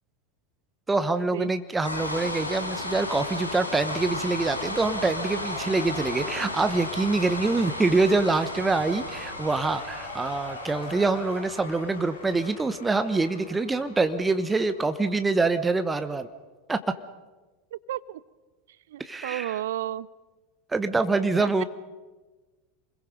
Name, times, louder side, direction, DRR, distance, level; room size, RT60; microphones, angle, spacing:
voice 1, 0.9-16.3 16.7-16.8 19.0-19.6 20.7-21.6, right 3 dB, 15° right, 10 dB, 1.1 m, -25 dB
sound 1, 1.8-15.9, left 1 dB, 90° left, 2.4 m, -35 dB
Cheering / Applause / Crowd, 4.9-13.8, left 3 dB, 60° left, 5.4 m, -44 dB
voice 2, 17.7-18.2 18.9-20.1 21.4-21.6, right 12 dB, 65° right, 21 dB, 0.6 m, -32 dB
28.5 x 21.5 x 5.2 m, 1.2 s
figure-of-eight pair, 80°, 0 cm